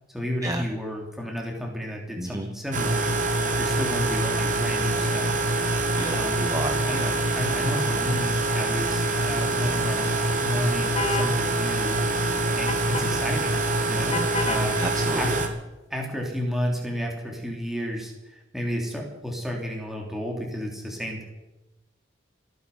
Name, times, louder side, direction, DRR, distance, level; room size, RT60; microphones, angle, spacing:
voice 1, 0.1-3.1 3.6-5.4 6.1-6.4 6.9-7.1 7.3-12.0 12.5-13.6 13.9-14.8 15.1-15.5 15.9-21.2, equal, ahead, 0 dB, 3.1 m, -32 dB
voice 2, 2.2-2.5 5.9-7.1 14.8-15.4, right 1 dB, 20° right, 5 dB, 1.1 m, -31 dB
sound 1, 2.7-15.5, right 2 dB, 40° right, 2.0 m, -25 dB
sound 2, 10.9-11.3 12.7-13.1 14.1-14.7, left 3 dB, 35° left, 1.4 m, -28 dB
27.5 x 9.4 x 5.5 m, 1.0 s
head